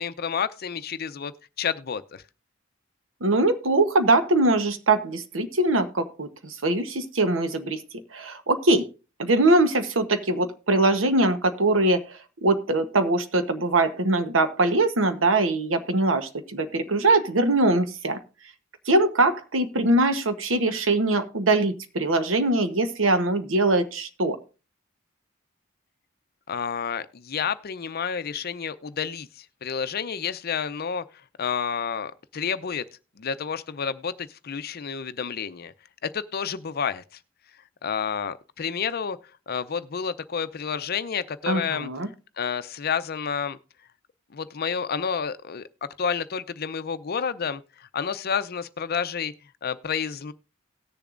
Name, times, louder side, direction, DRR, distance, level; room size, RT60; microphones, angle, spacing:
voice 1, 0.0-2.2 26.5-31.0 31.4-32.8 33.2-35.7 36.0-37.0 37.8-39.2 39.5-43.6 44.3-45.7 46.0-49.3 49.6-50.3, left 6 dB, 50° left, 0.6 m, -30 dB
voice 2, 3.2-7.8 8.1-8.9 9.2-12.1 12.4-18.2 18.9-24.4 41.5-42.1, right 2 dB, 80° right, 1.0 m, -22 dB
18.0 x 6.9 x 2.5 m
head